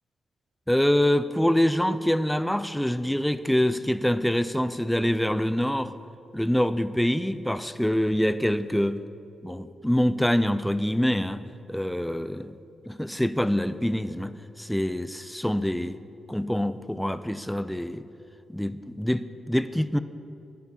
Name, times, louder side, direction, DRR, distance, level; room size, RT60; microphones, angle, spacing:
voice 1, 0.7-5.9 6.3-9.0 9.4-11.4 11.7-12.5 12.9-16.0 16.3-18.0 18.5-20.0, equal, 5° left, 13 dB, 0.5 m, -25 dB
15.5 x 10.5 x 2.9 m, 2.9 s
supercardioid pair, 45°, 0 cm